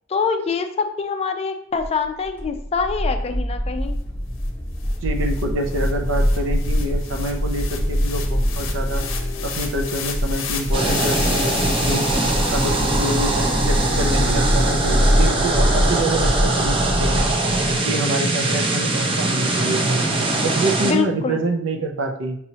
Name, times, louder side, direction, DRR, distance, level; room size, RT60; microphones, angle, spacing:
voice 1, 0.1-4.0 20.8-21.4, left 5 dB, 30° left, 7 dB, 0.3 m, -24 dB
sound 1, 1.8-17.8, equal, 10° left, 0.7 m, -23 dB
sound 2, 4.5-4.6 4.8-15.2, left 7 dB, 70° left, 0.6 m, -34 dB
voice 2, 5.0-9.1 9.4-12.1 12.5-17.3 17.8-20.0 20.4-22.4, right 1 dB, 75° right, 4 dB, 0.6 m, -26 dB
sound 3, 10.7-20.9, right 2 dB, 25° right, 0.6 m, -22 dB
5.4 x 3.0 x 2.8 m, 0.71 s
head